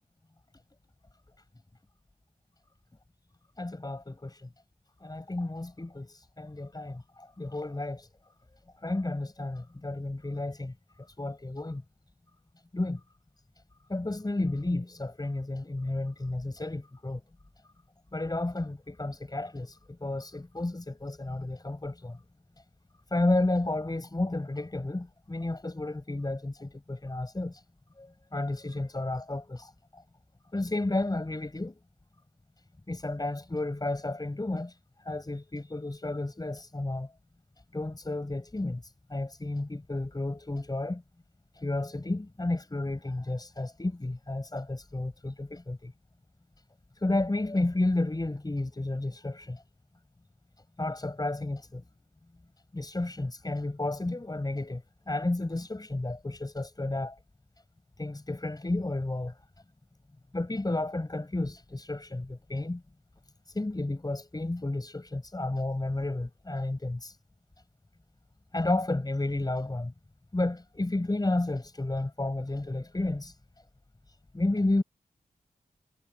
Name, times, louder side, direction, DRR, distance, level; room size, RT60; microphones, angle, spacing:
voice 1, 3.6-4.5 5.0-8.1 8.8-11.8 12.7-13.0 13.9-17.2 18.1-22.2 23.1-27.6 28.0-30.0 30.5-31.8 32.9-37.1 37.7-41.0 41.5-45.9 46.9-49.6 50.8-51.8 52.7-57.2 58.0-59.3 60.3-62.8 63.4-67.2 68.5-69.9 70.3-73.4 74.3-74.8, left 2 dB, 25° left, 7.4 m, -32 dB
wide cardioid pair, 70°, 15 cm